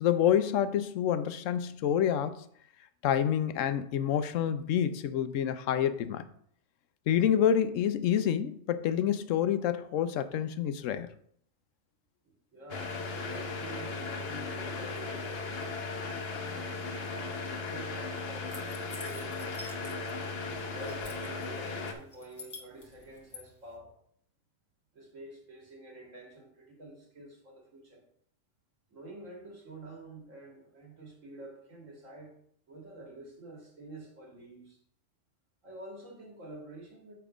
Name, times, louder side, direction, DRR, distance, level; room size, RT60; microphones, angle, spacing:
voice 1, 0.0-2.4 3.0-6.3 7.1-11.1, left 9 dB, 80° left, 1.0 m, -28 dB
voice 2, 12.5-15.8 16.4-18.6 18.9-20.0 20.6-23.9 24.9-28.0 28.9-32.3 32.7-34.8 35.6-37.2, right 1 dB, 80° right, 2.5 m, -48 dB
sound 1, 12.7-21.9, left 4 dB, 55° left, 1.0 m, -37 dB
sound 2, 18.5-20.2 20.5-21.4 21.9-23.4, left 3 dB, 15° left, 1.1 m, -47 dB
7.1 x 4.5 x 5.0 m
omnidirectional pair, 1.3 m